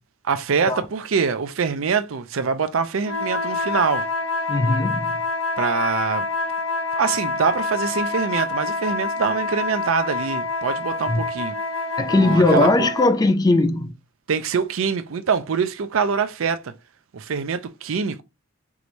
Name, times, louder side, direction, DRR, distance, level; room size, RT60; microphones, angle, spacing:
voice 1, 0.2-4.1 5.6-6.3 7.0-11.5 12.1-12.9 14.3-16.7 17.1-18.2, right 5 dB, 75° right, 0.5 m, -24 dB
sound 1, 3.0-13.2, left 3 dB, 80° left, 0.9 m, -27 dB
voice 2, 4.5-5.1 11.1-11.3 12.0-13.9, left 2 dB, 20° left, 0.3 m, -19 dB
4.8 x 3.0 x 2.6 m
head